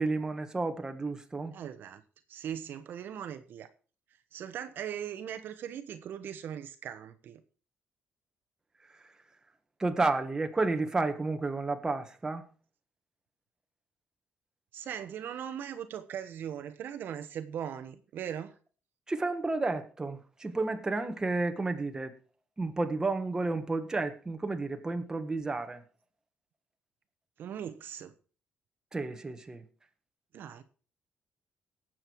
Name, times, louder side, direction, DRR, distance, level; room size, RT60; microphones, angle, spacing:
voice 1, 0.0-1.5 9.0-9.1 9.8-12.5 19.1-22.1 22.6-25.8 28.9-29.6, right 3 dB, 15° right, 1.6 m, -31 dB
voice 2, 1.5-2.0 2.3-3.7 4.3-7.4 14.7-18.5 27.4-28.1 30.3-30.6, right 9 dB, 65° right, 1.1 m, -39 dB
18.5 x 7.7 x 4.7 m
cardioid pair, 130°, 4 cm